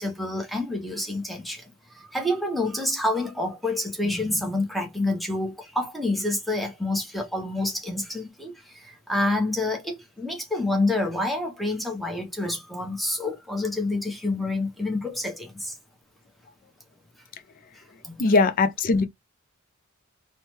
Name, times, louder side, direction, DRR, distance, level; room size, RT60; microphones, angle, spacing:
voice 1, 0.0-15.7 18.0-18.2, left 2 dB, ahead, 0.8 m, -28 dB
voice 2, 18.2-19.1, left 3 dB, 40° left, 0.4 m, -20 dB
3.2 x 2.1 x 3.0 m
head